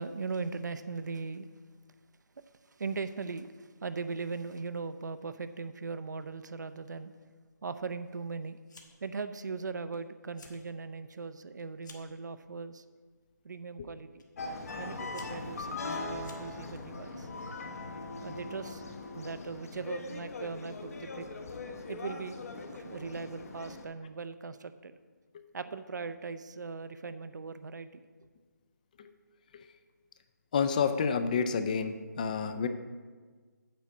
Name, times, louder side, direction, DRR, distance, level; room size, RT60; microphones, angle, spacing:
voice 1, 0.0-1.5 2.8-7.1 7.6-8.6 9.0-12.8 13.4-14.2 14.8-17.3 18.2-18.9 19.1-21.3 21.9-22.4 22.7-24.9 25.5-28.0, right 4 dB, 65° right, 12 dB, 0.6 m, -39 dB
Fire, 8.7-9.2 9.5-10.0 10.3-10.6 11.0-12.2 13.0-13.3 14.2-14.3 14.8-16.8, left 3 dB, 70° left, 1.5 m, -54 dB
sound 1, 14.4-23.8, left 3 dB, 50° left, 0.9 m, -40 dB
voice 2, 30.5-32.7, left 6 dB, 25° left, 10 dB, 0.4 m, -29 dB
8.8 x 4.1 x 7.2 m, 1.5 s
figure-of-eight pair, 160°, 10 cm